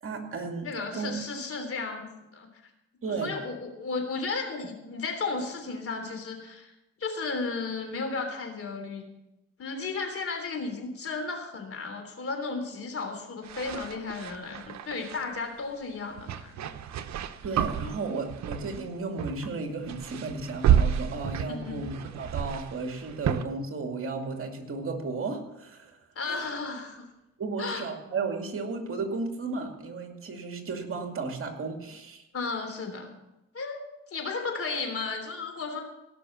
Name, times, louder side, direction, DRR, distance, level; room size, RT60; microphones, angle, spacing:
voice 1, 0.0-0.7 0.9-1.2 3.0-3.3 17.4-26.0 26.3-26.5 27.4-32.2, right 3 dB, 45° right, 3 dB, 2.5 m, -34 dB
voice 2, 0.6-2.5 3.1-6.7 7.0-9.1 9.6-16.7 21.5-21.8 26.1-27.1 27.6-27.8 32.3-33.1 33.5-33.8 34.1-35.8, left 4 dB, 50° left, 4 dB, 3.4 m, -34 dB
sound 1, 13.4-15.2 16.2-18.9 19.2-19.5 19.8-23.4, right 9 dB, 65° right, 0.9 m, -30 dB
17.5 x 6.2 x 7.1 m, 0.94 s
cardioid pair, 90°, 30 cm